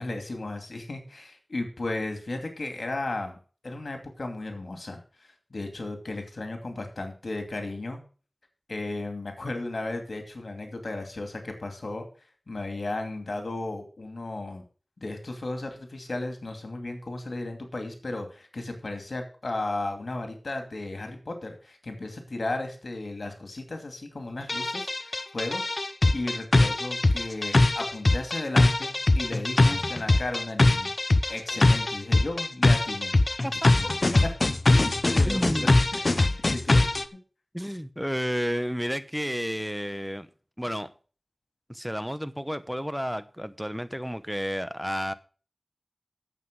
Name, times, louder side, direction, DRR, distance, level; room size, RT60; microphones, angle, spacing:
voice 1, 0.0-3.4 3.6-8.0 8.7-12.1 12.5-14.6 15.0-30.9 31.3-33.1 34.7-36.0 36.3-36.8, left 2 dB, 80° left, 2.6 m, -35 dB
sound 1, 24.5-37.1, left 2 dB, 55° left, 0.8 m, -22 dB
voice 2, 35.2-35.7 37.5-40.3 40.6-40.9 41.7-45.1, equal, ahead, 1.0 m, -31 dB
9.4 x 7.8 x 6.2 m
wide cardioid pair, 45°, 0 cm